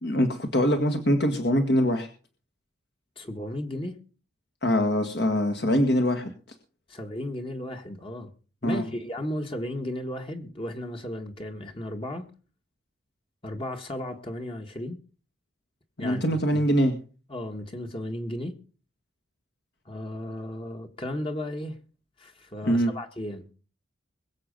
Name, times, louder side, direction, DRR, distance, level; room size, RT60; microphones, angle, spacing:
voice 1, 0.0-2.1 4.6-6.3 8.6-8.8 16.0-17.0 22.6-22.9, equal, 60° left, 1.8 m, -23 dB
voice 2, 3.2-4.0 6.9-8.3 8.6-12.3 13.4-15.0 16.0-16.7 17.3-18.6 19.8-21.8 22.2-23.4, left 1 dB, 30° left, 1.4 m, -35 dB
22.0 x 7.6 x 5.3 m
head